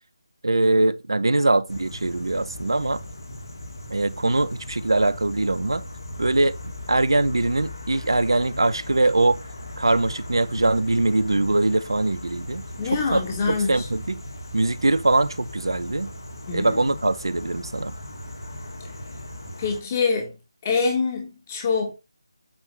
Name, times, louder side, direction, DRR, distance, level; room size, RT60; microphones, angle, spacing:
voice 1, 0.4-3.0 3.9-5.8 6.2-6.6 6.9-9.4 9.8-13.2 13.5-14.2 14.5-16.1 16.5-17.9, right 2 dB, 80° right, 0.8 m, -22 dB
sound 1, 1.7-19.8, left 1 dB, 60° left, 2.4 m, -38 dB
voice 2, 12.8-13.9 16.5-16.8 19.6-20.4 20.6-21.9, left 4 dB, 25° left, 1.9 m, -25 dB
8.8 x 3.7 x 5.5 m
figure-of-eight pair, 160°, 2 cm